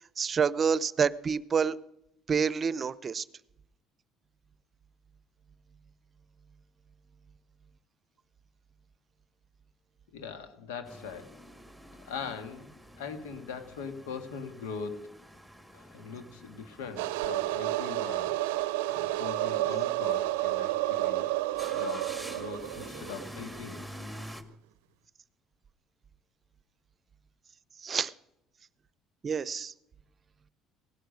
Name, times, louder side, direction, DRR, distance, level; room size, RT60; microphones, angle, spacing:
voice 1, 0.2-1.7 2.3-3.2 27.8-28.1 29.2-29.7, right 6 dB, 40° right, 20 dB, 0.6 m, -28 dB
voice 2, 10.1-11.3 11.9-12.7 13.0-15.0 15.7-18.4 18.9-21.3 21.7-23.8, left 5 dB, 85° left, 9 dB, 1.7 m, -41 dB
sound 1, 10.8-24.4, equal, ahead, 1.7 m, -48 dB
sound 2, 17.0-23.6, right 16 dB, 85° right, 0.5 m, -30 dB
17.5 x 11.5 x 6.4 m, 0.88 s
hypercardioid pair, 70°, 0 cm